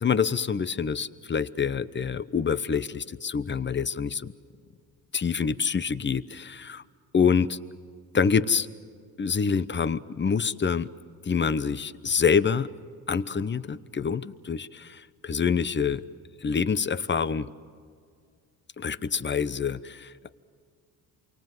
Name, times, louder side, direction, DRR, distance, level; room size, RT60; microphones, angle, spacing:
voice 1, 0.0-4.3 5.1-6.8 7.1-7.6 8.1-8.7 9.2-10.9 11.2-12.7 13.1-16.0 16.4-17.5 18.8-20.3, left 6 dB, 25° left, 15 dB, 0.9 m, -26 dB
28.5 x 24.5 x 7.8 m, 2.1 s
cardioid pair, 90°, 41 cm